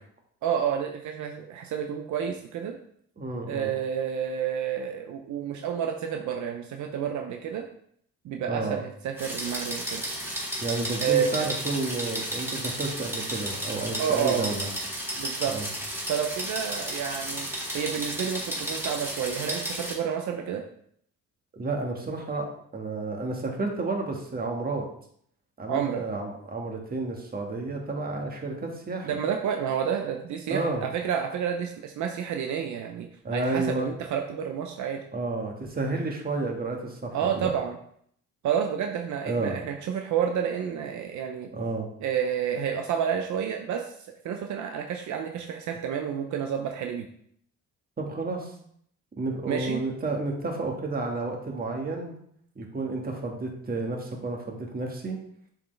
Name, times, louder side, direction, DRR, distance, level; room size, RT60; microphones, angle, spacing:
voice 1, 0.4-2.8 3.5-7.7 8.2-10.1 11.0-11.5 14.0-14.4 15.2-15.6 16.1-17.5 17.7-20.6 25.7-26.0 29.0-35.0 37.1-37.8 38.4-41.5 42.0-43.9 44.2-47.1 49.5-49.8, right 8 dB, 70° right, 4 dB, 0.7 m, -29 dB
voice 2, 3.2-3.7 8.5-8.8 10.6-14.7 15.4-15.7 21.5-22.5 22.7-24.8 25.6-29.1 30.5-30.9 33.2-33.9 35.1-37.5 39.3-39.6 41.5-41.9 48.0-48.5 49.2-52.2 52.5-55.2, right 3 dB, 30° right, 1 dB, 1.6 m, -31 dB
sound 1, 9.2-19.9, right 1 dB, 10° right, 2.1 m, -33 dB
7.1 x 4.6 x 3.3 m, 0.66 s
cardioid pair, 90°, 30 cm